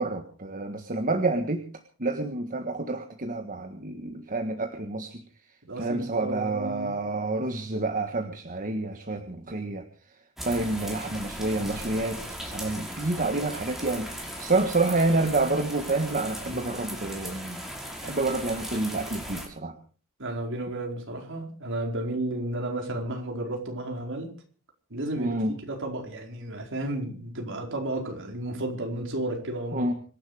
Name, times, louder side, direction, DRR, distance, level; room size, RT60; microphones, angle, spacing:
voice 1, 0.0-1.6 2.0-5.2 5.8-9.8 10.4-17.6 18.0-19.7 25.2-25.6 29.7-29.9, right 2 dB, 40° right, 1.6 m, -28 dB
voice 2, 5.7-7.0 16.5-16.7 20.2-24.3 24.9-29.9, right 1 dB, 60° right, 4.8 m, -33 dB
sound 1, 10.4-19.5, equal, ahead, 5.3 m, -38 dB
25.5 x 11.5 x 5.0 m
head